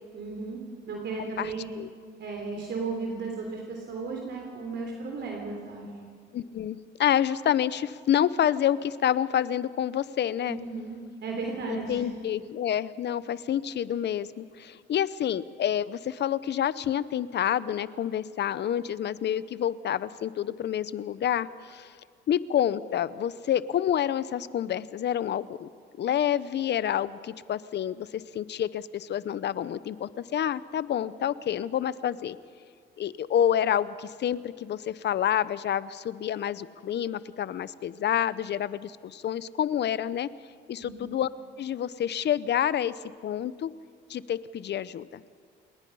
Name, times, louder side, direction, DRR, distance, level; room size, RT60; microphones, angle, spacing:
voice 1, 0.1-1.7 2.2-5.9 10.5-12.1 40.8-41.0, right 4 dB, 65° right, 1 dB, 3.4 m, -35 dB
voice 2, 1.4-1.9 6.3-10.6 11.7-21.9 22.3-25.7 26.0-32.4 33.0-40.3 40.7-41.3 41.6-42.9 43.2-43.7 44.1-45.2, left 10 dB, 60° left, 17 dB, 0.8 m, -28 dB
28.0 x 20.5 x 5.5 m, 2.1 s
cardioid pair, 90°, 20 cm